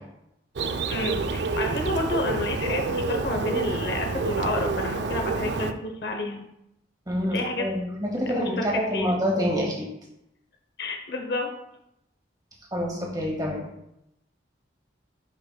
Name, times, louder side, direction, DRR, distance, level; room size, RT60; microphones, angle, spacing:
Bird, 0.6-5.7, right 3 dB, 70° right, 0.4 m, -28 dB
voice 1, 0.9-6.5 7.3-7.7 8.3-8.7 8.9-9.1 10.8-11.5, left 2 dB, 55° left, 3 dB, 0.8 m, -30 dB
voice 2, 7.1-9.9 12.7-13.7, equal, 20° right, -2 dB, 1.5 m, -27 dB
11.0 x 5.0 x 2.2 m, 0.83 s
head